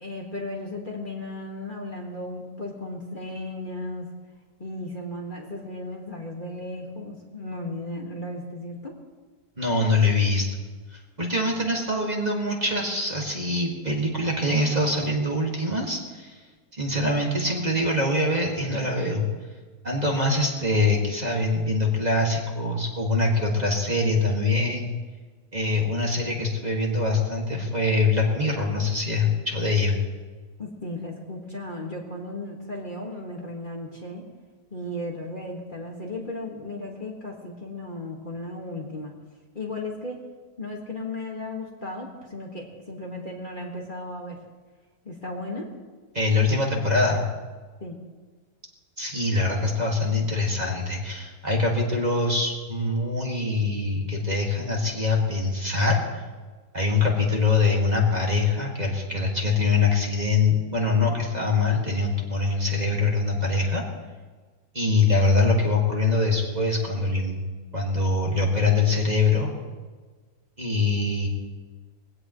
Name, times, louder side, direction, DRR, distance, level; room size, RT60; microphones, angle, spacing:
voice 1, 0.0-4.1 4.6-8.9 30.6-34.2 34.7-39.1 39.5-40.2 40.6-44.4 45.0-45.7 47.8-48.0, left 1 dB, 30° left, -1 dB, 2.0 m, -35 dB
voice 2, 9.6-10.5 10.9-16.4 16.7-19.3 19.8-24.9 25.5-30.0 46.1-47.2 49.0-56.2 56.7-63.8 64.7-67.4 67.7-69.5 70.6-71.3, left 3 dB, 25° right, -1 dB, 2.2 m, -24 dB
21.5 x 16.5 x 3.2 m, 1.4 s
omnidirectional pair, 1.7 m